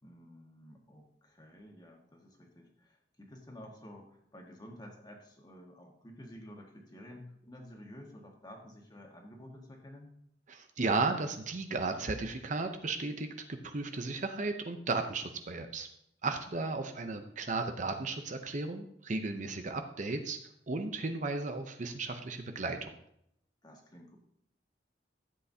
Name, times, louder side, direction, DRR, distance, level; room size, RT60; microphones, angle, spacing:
voice 1, 0.0-10.1 16.6-17.1 23.6-24.2, left 1 dB, 25° left, 0 dB, 1.7 m, -51 dB
voice 2, 10.5-15.9 16.2-20.4 20.7-23.0, right 3 dB, 45° right, 6 dB, 0.7 m, -35 dB
13.0 x 8.2 x 2.8 m, 0.73 s
head